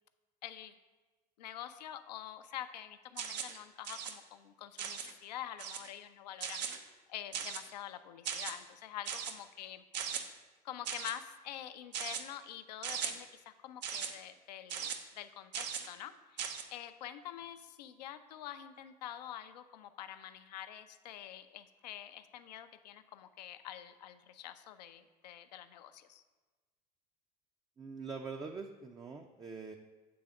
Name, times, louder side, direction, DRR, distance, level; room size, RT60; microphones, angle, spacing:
voice 1, 0.4-0.7 1.4-6.6 7.1-10.3 10.6-26.2, left 11 dB, 80° left, 11 dB, 0.4 m, -47 dB
sound 1, 3.2-3.6 3.8-4.1 4.8-5.1 5.6-5.9 6.4-6.8 7.3-7.7 8.2-8.5 9.1-9.3 9.9-10.2 10.8-11.1 11.9-12.2 12.8-13.1 13.8-14.1 14.7-15.0 15.5-15.9 16.4-16.6, right 7 dB, 80° right, 0.5 m, -38 dB
voice 2, 27.8-29.8, right 4 dB, 20° right, 4 dB, 0.4 m, -44 dB
7.8 x 3.4 x 4.7 m, 1.3 s
hypercardioid pair, 70°, 21 cm